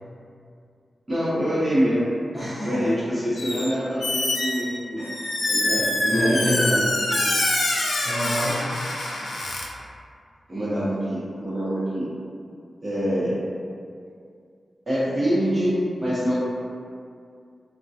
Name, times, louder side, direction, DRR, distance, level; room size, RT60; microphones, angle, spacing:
voice 1, 1.1-2.1 2.6-5.0 5.5-6.8 10.5-12.1 12.8-13.3 14.9-16.3, equal, 25° right, -10 dB, 0.9 m, -25 dB
voice 2, 2.3-3.0 5.0-5.4 5.7-6.8 8.0-8.8, equal, 10° left, -11 dB, 0.8 m, -29 dB
Squeak, 3.4-3.7 4.0-9.6, left 1 dB, 90° left, 0.4 m, -25 dB
3.5 x 2.2 x 2.7 m, 2.4 s
wide cardioid pair, 135°, 0 cm